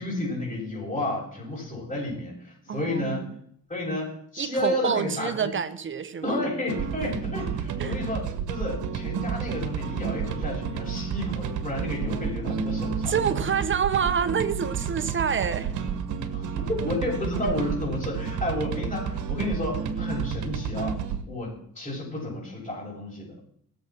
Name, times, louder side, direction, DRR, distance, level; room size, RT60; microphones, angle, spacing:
voice 1, 0.0-3.2 3.7-5.5 6.2-13.2 16.3-21.0 21.3-23.4, left 1 dB, 20° left, 7.6 m, -31 dB
voice 2, 2.7-3.3 4.4-6.4 7.8-8.0 13.0-15.7, right 7 dB, 40° right, 1.1 m, -27 dB
sound 1, 6.7-21.2, right 7 dB, 75° right, 1.4 m, -31 dB
19.0 x 7.3 x 6.2 m
cardioid pair, 90°, 30 cm